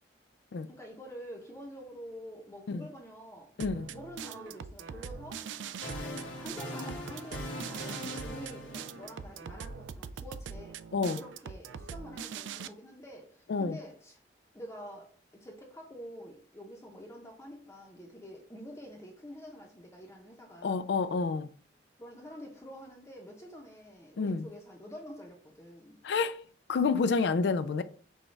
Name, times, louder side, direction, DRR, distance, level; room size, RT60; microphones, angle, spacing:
voice 1, 0.7-3.6 3.9-5.5 5.9-10.8 11.1-14.2 14.5-20.8 22.0-26.0, equal, 15° left, 0.7 m, -47 dB
voice 2, 3.6-3.9 10.9-11.2 13.5-13.8 20.6-21.5 24.2-24.5 26.0-26.4 26.7-27.8, left 4 dB, 65° left, 0.4 m, -29 dB
sound 1, 3.6-12.7, right 6 dB, 80° right, 0.3 m, -42 dB
sound 2, 5.4-9.6, left 1 dB, 80° left, 1.7 m, -41 dB
6.2 x 2.3 x 3.2 m
head